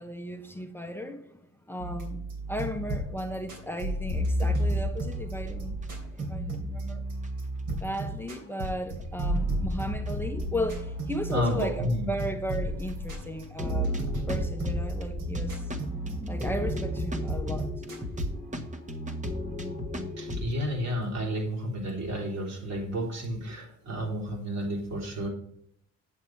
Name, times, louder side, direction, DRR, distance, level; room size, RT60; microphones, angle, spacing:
voice 1, 0.0-1.4 1.7-7.0 7.8-13.9 14.3-15.7 16.3-17.7, equal, 5° left, 0.9 m, -35 dB
sound 1, 1.8-18.3, right 1 dB, 80° right, 3.5 m, -32 dB
sound 2, 5.1-5.9 6.2-6.3 6.9-7.0 7.2-7.3 7.8-8.7 9.4-9.7 10.0-10.1 10.8-11.2 11.5-11.6 11.8-11.9 12.5-12.6 12.9-13.0 13.4-20.5, left 1 dB, 25° right, 1.3 m, -36 dB
voice 2, 11.3-12.1 20.2-25.3, equal, 60° right, 3.5 m, -31 dB
8.3 x 7.2 x 4.5 m
cardioid pair, 90°, 30 cm